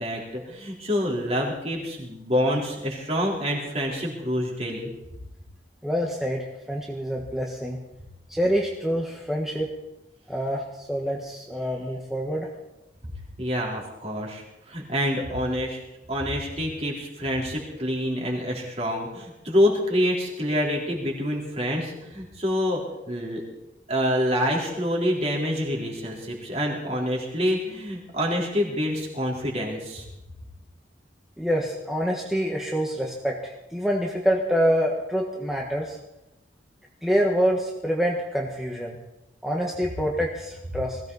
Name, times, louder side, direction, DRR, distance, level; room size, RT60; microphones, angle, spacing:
voice 1, 0.0-4.9 13.4-15.8 16.1-23.4 23.9-30.1, equal, 35° right, -2 dB, 3.9 m, -27 dB
voice 2, 5.8-7.8 8.3-9.7 10.3-12.5 31.4-36.0 37.0-39.0 39.4-41.0, equal, ahead, -1 dB, 1.4 m, -26 dB
21.0 x 16.5 x 4.1 m, 0.96 s
head